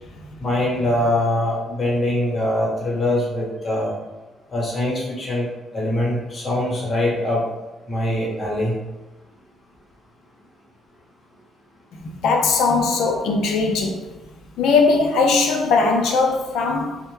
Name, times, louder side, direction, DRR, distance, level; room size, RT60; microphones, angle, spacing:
voice 1, 0.4-3.9 4.5-5.5 5.7-7.4 7.9-8.7, left 1 dB, 35° left, 1.0 m, -23 dB
voice 2, 12.0-14.0 14.6-17.0, left 4 dB, 80° left, 0.4 m, -19 dB
2.1 x 2.1 x 3.1 m
cardioid pair, 90°, 0 cm